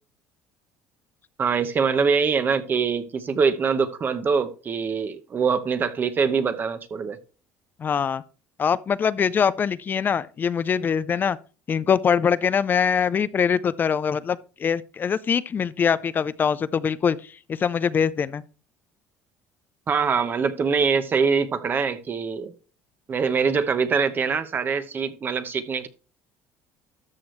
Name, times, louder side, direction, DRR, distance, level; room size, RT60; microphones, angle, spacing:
voice 1, 1.4-7.2 19.9-22.5 23.1-25.9, right 5 dB, 35° right, 0.9 m, -23 dB
voice 2, 7.8-8.2 8.6-11.4 11.7-18.4, left 7 dB, 35° left, 0.5 m, -23 dB
13.0 x 6.2 x 3.2 m
supercardioid pair, 105°, 6 cm